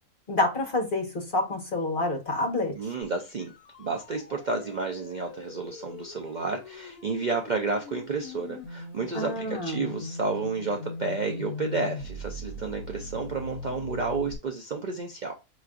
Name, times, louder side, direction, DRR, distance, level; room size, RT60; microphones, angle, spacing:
voice 1, 0.3-2.9 9.1-10.0, left 2 dB, 35° left, 1.3 m, -28 dB
voice 2, 2.8-3.5 3.8-15.3, right 4 dB, 80° right, 0.4 m, -31 dB
sound 1, 3.0-14.3, left 2 dB, 80° left, 1.3 m, -40 dB
5.7 x 3.1 x 2.4 m
omnidirectional pair, 1.6 m